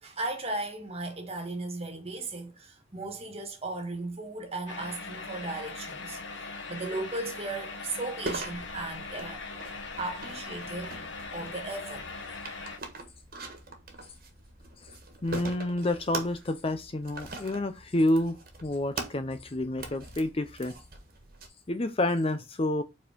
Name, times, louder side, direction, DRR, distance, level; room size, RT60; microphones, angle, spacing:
voice 1, 0.0-6.2 6.7-9.4 10.0-11.0 11.3-12.1, right 2 dB, 30° right, 1.7 m, -36 dB
sound 1, 4.7-12.8, left 3 dB, 70° left, 1.4 m, -40 dB
sound 2, 8.3-21.5, right 2 dB, 50° right, 1.6 m, -42 dB
voice 2, 15.2-20.7 21.7-22.8, left 1 dB, 30° left, 0.5 m, -29 dB
5.1 x 4.3 x 5.1 m
head